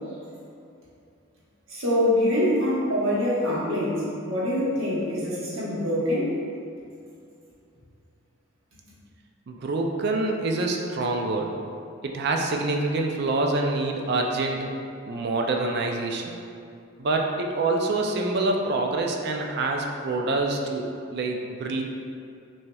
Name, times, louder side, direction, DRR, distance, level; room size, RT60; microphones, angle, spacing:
voice 1, 1.7-6.3, left 1 dB, 75° right, -8 dB, 1.3 m, -24 dB
voice 2, 9.5-11.5 12.0-14.7 15.1-16.2 17.0-21.8, right 2 dB, 50° right, 2 dB, 0.4 m, -26 dB
6.1 x 2.8 x 2.3 m, 2.5 s
head